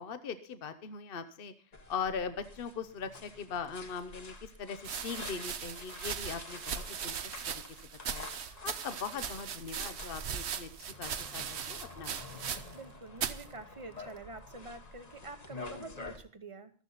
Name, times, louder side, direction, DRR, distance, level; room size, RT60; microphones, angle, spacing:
voice 1, 0.0-1.5 1.9-7.2 7.5-7.6 8.1-8.3 8.6-10.7 11.0-12.1 12.5-12.6, left 6 dB, 55° left, 11 dB, 1.1 m, -40 dB
sound 1, 1.7-16.2, left 3 dB, 35° left, 1.4 m, -49 dB
sound 2, 3.7-3.8 4.8-12.9 13.1-13.5 14.2-14.6, right 7 dB, 75° right, 1.1 m, -39 dB
voice 2, 12.7-16.7, right 3 dB, 30° right, 10 dB, 1.1 m, -47 dB
14.5 x 13.0 x 4.0 m, 0.42 s
omnidirectional pair, 1.1 m